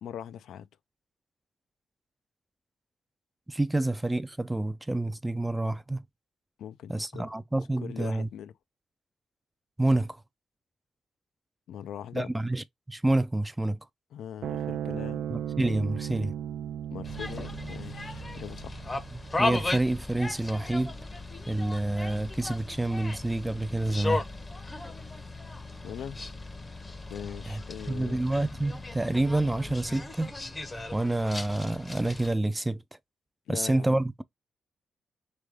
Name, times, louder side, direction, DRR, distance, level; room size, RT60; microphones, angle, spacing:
voice 1, 0.0-0.7 6.6-7.3 7.8-8.5 11.7-12.3 14.1-15.2 16.9-19.0 25.8-26.2 27.1-28.2 33.5-34.0, left 9 dB, 85° left, 0.3 m, -41 dB
voice 2, 3.5-6.1 6.9-8.3 9.8-10.2 12.1-13.9 15.3-16.3 19.4-21.0 21.5-24.2 27.5-27.6 27.9-30.3 30.9-32.8 33.5-34.2, right 2 dB, 10° right, 0.3 m, -28 dB
sound 1, 14.4-21.1, right 10 dB, 90° right, 0.4 m, -37 dB
sound 2, 17.0-32.3, left 2 dB, 20° left, 0.6 m, -36 dB
3.3 x 3.3 x 3.4 m
cardioid pair, 105°, 0 cm